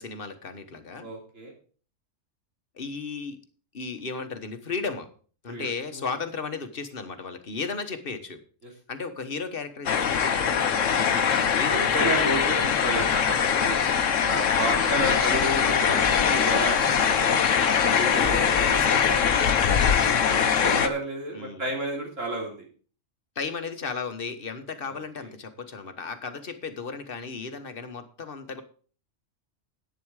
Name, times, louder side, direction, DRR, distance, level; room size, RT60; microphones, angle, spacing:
voice 1, 0.0-1.1 2.7-3.4 3.7-5.1 5.4-8.4 8.9-11.1 11.5-12.9 15.0-16.4 18.1-20.0 21.3-21.7 23.3-28.6, left 4 dB, 45° left, 9 dB, 1.4 m, -35 dB
voice 2, 1.0-1.5 5.5-6.1 8.6-8.7 11.4-13.8 14.2-18.6 20.2-22.6 24.9-25.3, right 2 dB, 85° right, 0 dB, 3.9 m, -32 dB
sound 1, 9.9-20.9, left 7 dB, 80° left, 1.3 m, -22 dB
11.0 x 9.2 x 4.8 m, 0.41 s
omnidirectional pair, 1.3 m